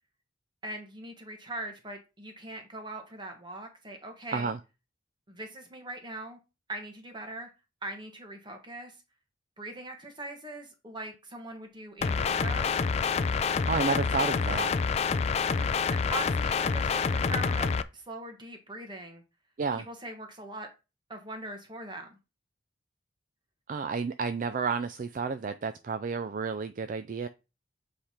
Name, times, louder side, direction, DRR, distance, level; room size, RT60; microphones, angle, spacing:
voice 1, 0.6-4.5 5.3-6.4 6.7-7.5 7.8-8.9 9.6-12.7 15.5-19.2 19.9-20.7 21.1-22.2, right 1 dB, 25° right, 1.3 m, -41 dB
sound 1, 12.0-17.8, left 5 dB, 35° left, 0.3 m, -27 dB
voice 2, 13.4-14.7 19.6-19.9 23.7-27.3, right 5 dB, 45° right, 0.4 m, -31 dB
7.7 x 3.3 x 4.3 m
head